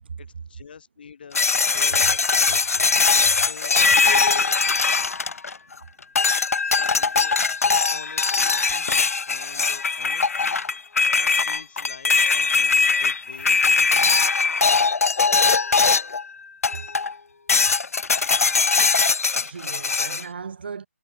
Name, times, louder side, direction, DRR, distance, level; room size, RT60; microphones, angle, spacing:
voice 1, 0.2-2.6 3.0-3.8 4.2-4.5 6.7-10.6 11.1-14.2, left 6 dB, 40° left, 2.0 m, -45 dB
sound 1, 1.3-5.7 6.2-16.2 16.6-17.1 17.5-20.2, left 4 dB, 85° left, 0.7 m, -20 dB
voice 2, 19.4-20.9, right 6 dB, 45° right, 0.8 m, -37 dB
hypercardioid pair, 170°, 8 cm